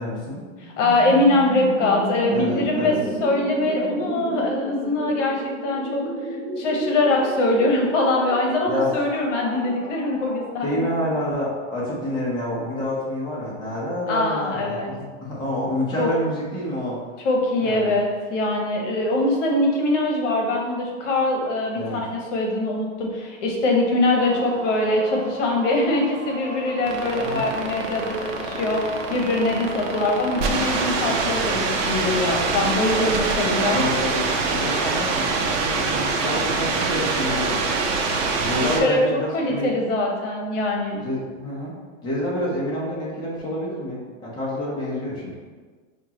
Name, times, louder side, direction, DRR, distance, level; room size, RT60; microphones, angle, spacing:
voice 1, 0.0-0.4 2.3-3.0 8.6-8.9 10.6-17.0 17.6-17.9 21.7-22.0 27.2-27.4 33.7-37.6 38.4-39.7 41.0-41.7 42.0-45.4, left 1 dB, 10° left, -6 dB, 0.8 m, -28 dB
voice 2, 0.6-2.9 3.2-6.1 6.6-10.7 14.1-14.9 16.0-16.1 17.2-33.9 38.8-39.0 39.3-41.0, left 2 dB, 65° left, 0 dB, 1.0 m, -23 dB
sound 1, 0.6-12.4, right 1 dB, 15° right, 0.4 m, -33 dB
sound 2, 24.1-30.9, right 1 dB, 30° right, 0.9 m, -36 dB
sound 3, 26.9-38.8, right 4 dB, 70° right, 0.8 m, -24 dB
5.3 x 2.4 x 2.9 m, 1.4 s
supercardioid pair, 150°, 39 cm